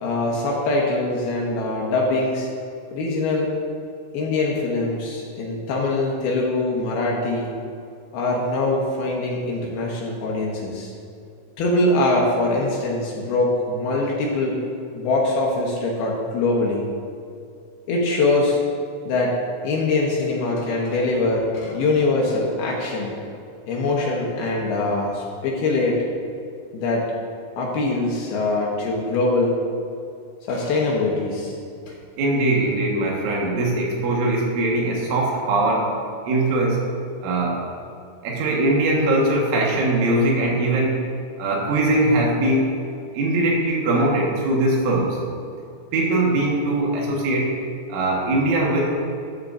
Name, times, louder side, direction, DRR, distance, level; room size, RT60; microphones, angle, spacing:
voice 1, 0.0-2.5 2.9-3.5 4.1-7.5 8.1-10.9 11.6-14.6 14.9-16.9 17.9-18.6 19.1-23.1 23.7-26.0 26.7-27.1 27.6-29.6 30.4-31.5 31.9-32.0, left 2 dB, 70° left, -2 dB, 2.4 m, -23 dB
voice 2, 32.2-35.9 36.3-36.8 37.2-37.6 38.2-41.0 41.4-42.7 43.1-45.2 45.9-47.5 47.9-49.0, right 2 dB, 75° right, -3 dB, 3.9 m, -21 dB
13.5 x 9.9 x 2.6 m, 2.5 s
omnidirectional pair, 5.7 m